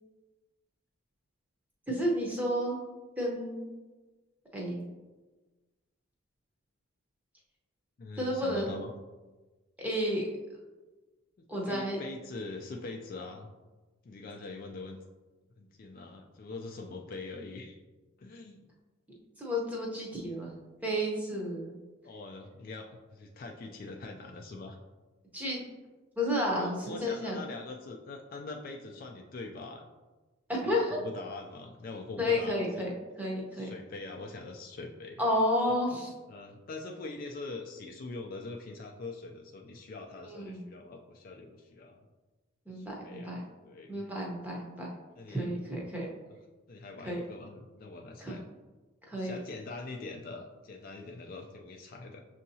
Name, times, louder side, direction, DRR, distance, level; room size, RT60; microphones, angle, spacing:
voice 1, 1.9-2.8 3.2-3.7 4.5-4.9 8.2-8.8 9.8-10.2 11.5-12.0 19.4-20.5 20.8-21.7 25.3-25.6 26.2-27.4 30.5-31.0 32.2-32.9 33.2-33.7 35.2-36.1 40.3-40.6 42.7-43.4 43.9-44.9 45.3-46.1 47.0-47.2 48.2-48.4 49.1-49.4, equal, 10° right, -3 dB, 0.7 m, -31 dB
voice 2, 8.0-8.9 11.4-13.5 14.0-15.0 15.6-17.8 18.2-18.7 22.0-24.8 26.6-29.8 30.6-32.9 33.5-35.2 36.3-42.0 42.7-44.1 45.2-45.5 46.7-48.4 49.2-52.2, left 3 dB, 45° left, 2 dB, 0.3 m, -43 dB
6.3 x 2.7 x 2.7 m, 1.2 s
head